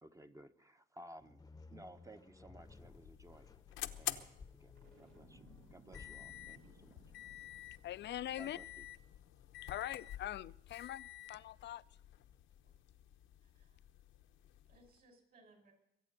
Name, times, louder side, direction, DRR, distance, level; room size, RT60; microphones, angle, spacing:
voice 1, 0.0-1.4 1.7-3.5 4.0-4.3 4.6-7.0 8.4-8.9, right 1 dB, 15° right, 1.0 m, -57 dB
sound 1, 1.2-12.3, left 3 dB, 20° left, 0.9 m, -61 dB
sound 2, 2.6-15.0, left 12 dB, 85° left, 1.0 m, -50 dB
Boom, 4.8-8.0, right 3 dB, 75° right, 3.1 m, -63 dB
voice 2, 7.8-8.6 9.6-11.8, left 12 dB, 60° left, 0.5 m, -43 dB
voice 3, 13.4-13.8 14.2-15.7, right 2 dB, 45° right, 5.5 m, -67 dB
23.0 x 8.6 x 6.6 m
cardioid pair, 90°, 20 cm